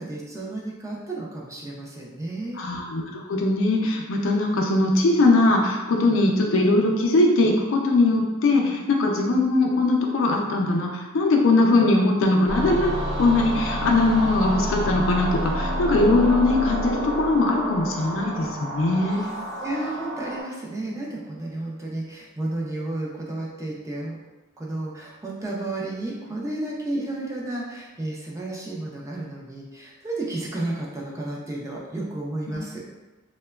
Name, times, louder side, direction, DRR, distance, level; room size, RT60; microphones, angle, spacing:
voice 1, 0.0-2.6 19.2-19.3 19.6-24.2 24.6-32.8, right 2 dB, 15° right, -3 dB, 0.4 m, -32 dB
voice 2, 2.6-19.3 32.5-32.6, left 2 dB, 65° left, 0 dB, 0.4 m, -21 dB
sound 1, 12.5-20.4, right 1 dB, 60° right, 0.7 m, -29 dB
2.8 x 2.2 x 2.2 m, 1.1 s
head